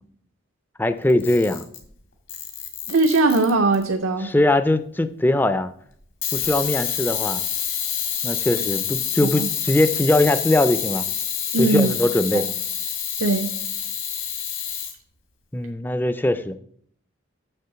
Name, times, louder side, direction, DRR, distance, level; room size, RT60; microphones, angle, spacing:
voice 1, 0.8-1.7 4.2-5.7 6.3-7.4 8.2-11.0 11.6-12.5 15.5-16.5, left 1 dB, 10° left, 11 dB, 0.3 m, -21 dB
Camera, 1.1-1.9 2.3-3.8 6.2-14.9, left 9 dB, 75° left, 1.8 m, -27 dB
voice 2, 2.9-4.3 9.3-9.5 11.5-12.0 12.3-12.5 13.2-13.5, right 2 dB, 85° right, 5 dB, 0.6 m, -20 dB
7.0 x 6.7 x 5.7 m, 0.65 s
head